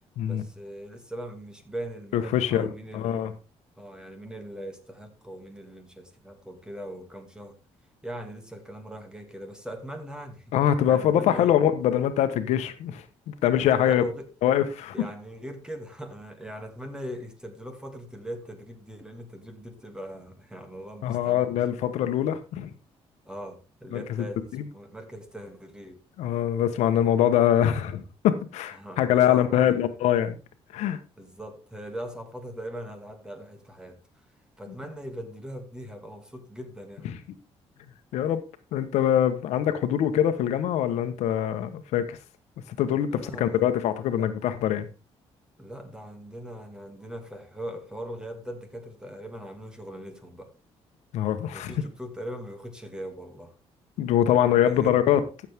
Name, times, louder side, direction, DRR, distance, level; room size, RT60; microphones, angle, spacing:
voice 1, 0.2-3.3 3.8-7.6 8.0-10.4 10.9-11.5 13.8-14.3 14.9-21.6 23.3-26.0 28.8-29.8 31.2-34.0 34.6-37.1 43.1-43.6 44.1-44.3 45.6-50.5 51.5-53.5 54.6-55.2, equal, 5° right, 2.3 m, -40 dB
voice 2, 2.1-3.3 10.5-14.0 14.4-14.9 21.0-22.7 23.9-24.2 24.5-24.6 26.2-30.4 30.7-31.0 37.0-37.2 38.1-38.4 38.7-42.2 42.7-44.9 51.1-51.7 54.0-55.2, left 10 dB, 90° left, 1.2 m, -24 dB
14.0 x 7.3 x 3.6 m
cardioid pair, 115°, 11 cm